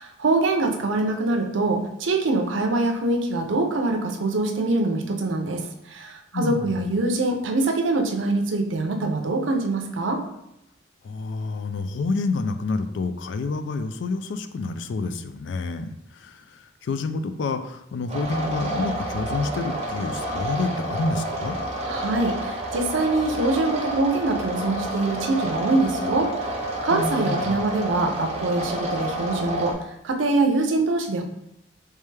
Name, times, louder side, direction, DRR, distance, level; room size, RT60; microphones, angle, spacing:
voice 1, 0.0-10.2 21.8-26.6 26.8-31.2, right 2 dB, 80° right, 4 dB, 0.6 m, -24 dB
voice 2, 6.3-6.9 11.0-21.6 26.9-27.6, left 3 dB, 65° left, 9 dB, 0.3 m, -28 dB
sound 1, 18.1-29.7, right 1 dB, 35° right, 0.6 m, -29 dB
3.3 x 3.2 x 3.2 m, 0.81 s
head